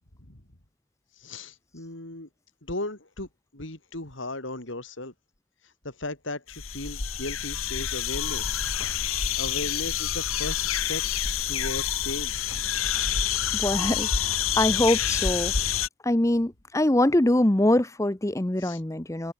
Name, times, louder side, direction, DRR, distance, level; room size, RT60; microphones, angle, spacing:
voice 1, 1.2-2.3 2.6-3.3 3.5-5.1 5.8-8.6 9.4-11.0 11.5-12.5 18.6-18.8, left 2 dB, 65° left, 3.6 m, -36 dB
sound 1, 6.5-15.9, left 9 dB, 80° left, 1.9 m, -28 dB
voice 2, 13.5-15.5 16.0-19.3, left 1 dB, 15° left, 0.7 m, -24 dB
head